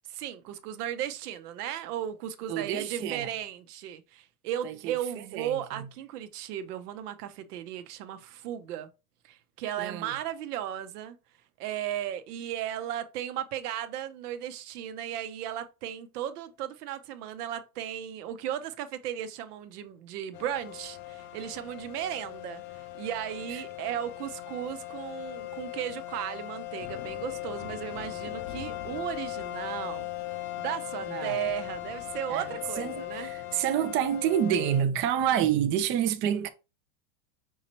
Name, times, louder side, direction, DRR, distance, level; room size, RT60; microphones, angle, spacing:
voice 1, 0.1-8.9 9.2-11.2 11.6-30.1 30.6-33.3 35.3-35.5 36.3-36.4, right 11 dB, 75° right, 0.8 m, -36 dB
voice 2, 2.5-3.3 4.6-5.9 9.8-10.1 31.1-31.4 32.3-32.5 32.8-36.5, right 9 dB, 30° right, 0.4 m, -28 dB
sound 1, 20.3-34.8, left 15 dB, 40° left, 0.6 m, -39 dB
5.6 x 3.1 x 2.8 m
supercardioid pair, 120°, 46 cm